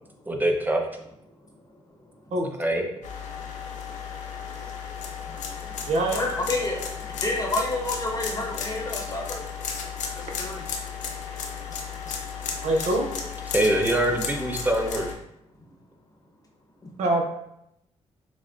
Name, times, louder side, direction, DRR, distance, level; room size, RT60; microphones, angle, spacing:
voice 1, 0.3-0.8 2.6-2.9 13.5-15.1, right 1 dB, 15° right, 2 dB, 0.7 m, -23 dB
sound 1, 3.0-15.1, left 6 dB, 80° left, 0.5 m, -34 dB
voice 2, 5.2-5.9 6.2-9.4 10.1-10.6 12.0-12.2 12.4-12.6 15.6-15.7, left 2 dB, 30° left, 0 dB, 0.9 m, -31 dB
voice 3, 5.9-6.3 12.6-13.1 17.0-17.2, right 1 dB, 65° right, 2 dB, 0.7 m, -24 dB
6.0 x 2.1 x 2.5 m, 0.81 s
cardioid pair, 70°, 12 cm